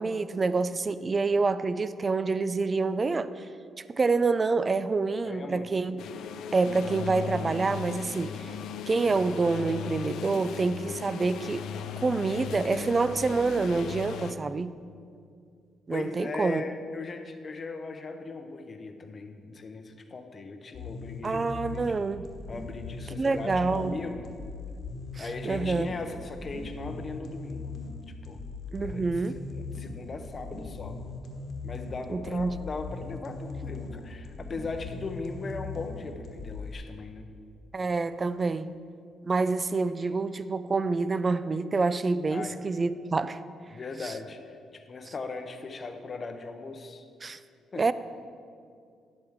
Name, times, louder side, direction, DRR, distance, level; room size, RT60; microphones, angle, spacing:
voice 1, 0.0-3.5 3.9-6.0 6.5-8.5 8.9-11.7 12.0-14.7 15.9-16.6 21.2-22.2 23.2-23.9 25.2-25.9 28.7-29.4 32.1-32.6 37.7-38.7 39.2-43.4 44.0-44.1 47.2-47.4 47.8-47.9, right 3 dB, 30° right, 14 dB, 0.3 m, -27 dB
voice 2, 5.2-5.7 15.9-21.4 21.7-22.0 22.5-24.3 25.2-27.7 28.3-28.4 28.8-29.1 29.5-31.0 31.6-37.3 42.3-42.5 43.7-47.0 47.7-47.8, left 3 dB, 40° left, 6 dB, 0.7 m, -38 dB
sound 1, 6.0-14.3, left 7 dB, 80° left, 0.4 m, -37 dB
sound 2, 20.7-36.7, left 3 dB, 60° left, 1.3 m, -39 dB
10.0 x 7.8 x 3.6 m, 2.3 s
cardioid pair, 90°, 0 cm